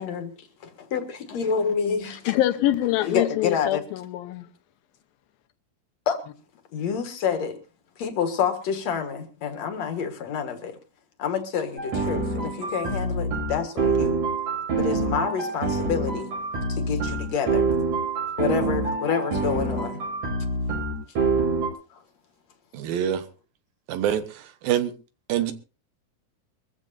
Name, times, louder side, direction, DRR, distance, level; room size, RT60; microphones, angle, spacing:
voice 1, 0.0-2.4 3.0-3.8 6.1-6.2 6.7-7.6 8.0-10.8 11.2-14.2 14.7-16.3 16.7-17.7 18.4-20.0 21.9-22.0, left 6 dB, 55° left, 2.5 m, -28 dB
voice 2, 2.3-4.5, left 14 dB, 75° left, 2.7 m, -24 dB
sound 1, 11.8-21.7, right 3 dB, 50° right, 6.6 m, -26 dB
voice 3, 22.7-23.2 23.9-24.9 25.3-25.5, right 10 dB, 75° right, 2.9 m, -25 dB
23.0 x 14.5 x 2.6 m
omnidirectional pair, 4.3 m